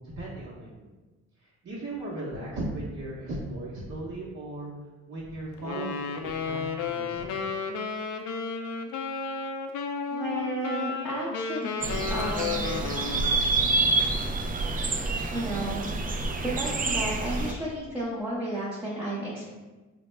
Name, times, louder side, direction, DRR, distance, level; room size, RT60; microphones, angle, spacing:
voice 1, 0.2-0.9 1.6-4.7 5.1-7.3, right 2 dB, 50° right, -6 dB, 0.8 m, -37 dB
Wind instrument woodwind instrument, 5.6-13.6, left 4 dB, 75° left, 0.5 m, -33 dB
voice 2, 10.1-12.8 15.3-15.9 16.4-19.5, right 1 dB, 5° right, -9 dB, 0.8 m, -33 dB
sound 1, 11.8-17.5, right 3 dB, 30° right, 0.4 m, -27 dB
4.0 x 2.1 x 3.2 m, 1.2 s
cardioid pair, 90°, 30 cm